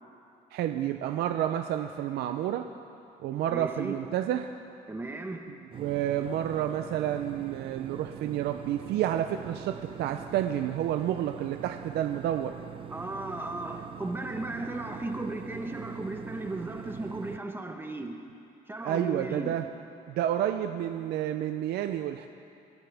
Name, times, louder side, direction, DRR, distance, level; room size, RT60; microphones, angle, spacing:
voice 1, 0.5-2.7 3.2-4.5 5.8-12.6 18.8-19.7 20.1-22.3, right 11 dB, 75° right, 6 dB, 0.6 m, -30 dB
voice 2, 3.5-4.0 4.9-5.6 12.9-18.2 18.7-19.6, right 2 dB, 15° right, 3 dB, 1.2 m, -35 dB
sound 1, 5.7-17.4, right 9 dB, 30° right, 0.5 m, -44 dB
26.5 x 11.5 x 3.5 m, 2.7 s
cardioid pair, 110°, 17 cm